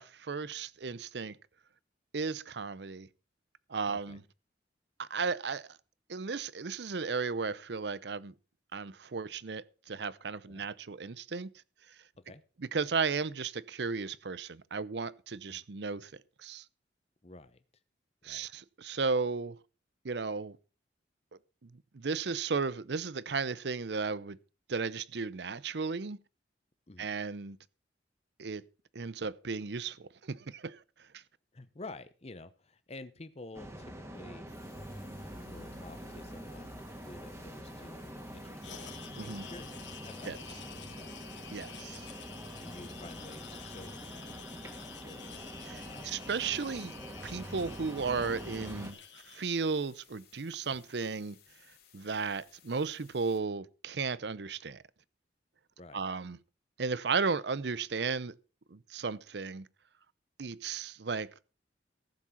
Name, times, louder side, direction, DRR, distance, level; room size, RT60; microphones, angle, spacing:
voice 1, 0.0-1.4 2.1-3.1 3.7-4.2 5.0-5.8 6.1-8.3 8.7-11.5 12.7-16.1 16.4-16.6 18.2-19.6 20.0-20.6 21.6-24.4 24.7-26.2 27.0-27.6 28.4-28.6 28.9-30.8 31.1-31.2 39.2-39.5 40.3-40.4 41.5-42.1 45.6-46.9 47.2-49.0 49.3-51.4 51.9-54.8 55.9-56.4 56.8-58.4 58.7-59.7 60.4-61.5, right 4 dB, 65° right, 0.7 m, -35 dB
voice 2, 3.9-4.2 10.5-10.7 12.2-12.4 15.5-15.6 17.2-17.6 18.2-18.5 26.9-27.1 31.5-34.5 35.4-38.9 39.2-41.2 42.6-44.4 44.6-46.1 55.8-56.0, left 2 dB, 35° left, 0.9 m, -50 dB
sound 1, 33.5-48.9, equal, 15° right, 2.0 m, -45 dB
sound 2, 34.5-53.4, left 10 dB, 55° left, 3.1 m, -62 dB
sound 3, 38.6-49.4, left 7 dB, 85° left, 2.2 m, -50 dB
15.0 x 7.4 x 5.7 m
head